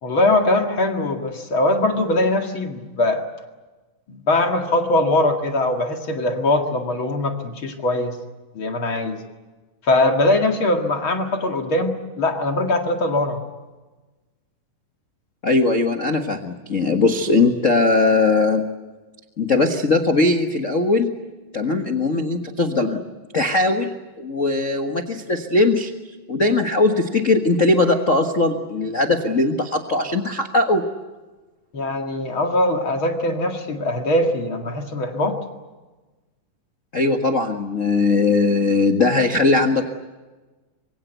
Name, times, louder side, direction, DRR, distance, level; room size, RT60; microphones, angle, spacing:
voice 1, 0.0-3.2 4.1-8.2 8.5-9.2 9.8-13.4 31.7-35.4, left 1 dB, 40° left, 4 dB, 2.4 m, -21 dB
voice 2, 15.4-18.7 19.4-21.1 21.5-23.0 23.3-25.9 26.3-30.8 36.9-39.8, left 3 dB, 65° left, 5 dB, 0.7 m, -19 dB
26.0 x 24.0 x 8.1 m, 1.2 s
omnidirectional pair, 4.1 m